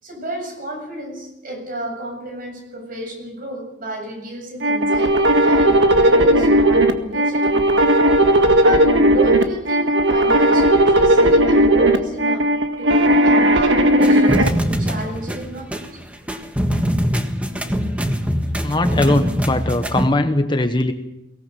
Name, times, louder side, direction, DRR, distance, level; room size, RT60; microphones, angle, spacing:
voice 1, 0.0-7.8 8.6-12.4 12.8-16.0 19.0-19.1, equal, 45° right, 3 dB, 7.8 m, -31 dB
sound 1, 4.6-14.5, right 1 dB, 65° right, 1.8 m, -15 dB
sound 2, 14.0-20.1, equal, 5° right, 1.5 m, -23 dB
voice 2, 18.6-20.9, left 1 dB, 25° left, 8 dB, 1.1 m, -19 dB
23.0 x 18.5 x 7.0 m, 0.94 s
head